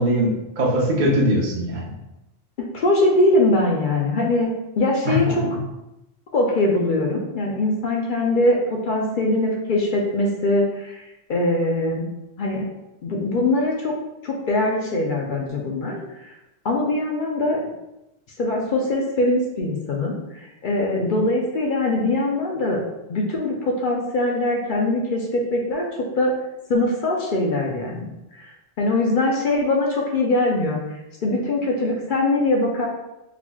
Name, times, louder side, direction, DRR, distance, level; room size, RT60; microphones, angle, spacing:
voice 1, 0.0-1.8 5.1-5.6, equal, 45° right, -2 dB, 0.8 m, -21 dB
voice 2, 2.7-5.4 6.3-11.0 11.3-12.1 12.4-12.6 13.0-13.9 14.2-16.0 16.6-17.6 18.4-22.8 23.1-25.8 26.2-26.3 26.7-28.1 28.4-28.5 28.8-30.8 31.2-32.9, left 2 dB, 55° left, 0 dB, 0.6 m, -22 dB
3.9 x 2.9 x 2.2 m, 0.93 s
omnidirectional pair, 1.2 m